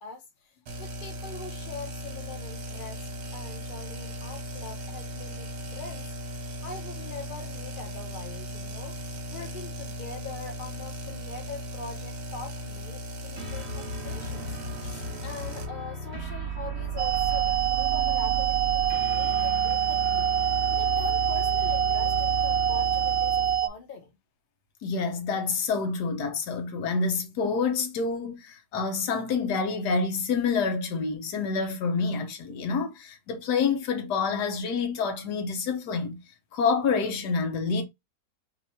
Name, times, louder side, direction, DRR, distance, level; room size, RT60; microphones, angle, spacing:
voice 1, 0.0-6.1 6.6-9.0 9.3-20.3 20.7-24.1, left 4 dB, 40° left, 0.8 m, -43 dB
sound 1, 0.7-15.7, equal, 50° right, 1.1 m, -38 dB
sound 2, 13.4-23.7, right 2 dB, 30° right, 1.4 m, -34 dB
sound 3, 17.0-23.7, right 11 dB, 80° right, 0.6 m, -25 dB
voice 2, 24.8-36.2 36.5-37.8, left 5 dB, 80° left, 1.5 m, -27 dB
3.2 x 2.9 x 4.2 m
omnidirectional pair, 1.7 m